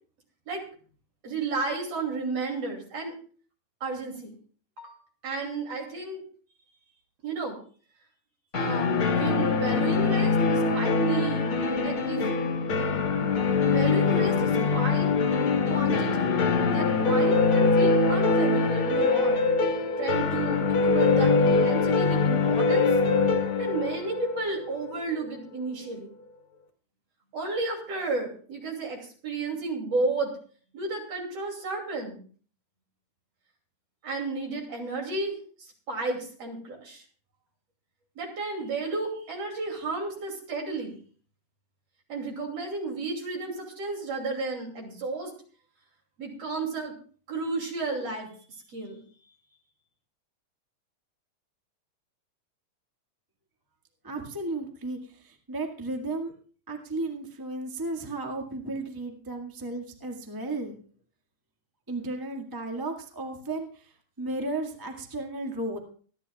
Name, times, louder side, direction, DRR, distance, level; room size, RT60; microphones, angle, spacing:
voice 1, 1.2-3.2 3.8-4.4 4.8-5.0 5.2-6.2 7.2-7.6 8.5-11.5 11.8-12.2 13.6-15.2 15.7-16.3 16.7-19.4 20.0-22.9 23.6-26.1 27.3-30.3 30.7-32.2 34.0-37.0 38.2-41.0 42.1-45.3 46.2-46.9 47.3-48.3 48.7-49.3, right 3 dB, 55° right, 1 dB, 3.7 m, -32 dB
sound 1, 8.5-25.3, left 4 dB, 50° left, 2.2 m, -23 dB
voice 2, 54.0-56.3 56.7-60.8 61.9-65.8, right 2 dB, 10° right, 2 dB, 1.2 m, -34 dB
25.5 x 10.5 x 2.4 m, 0.43 s
omnidirectional pair, 3.4 m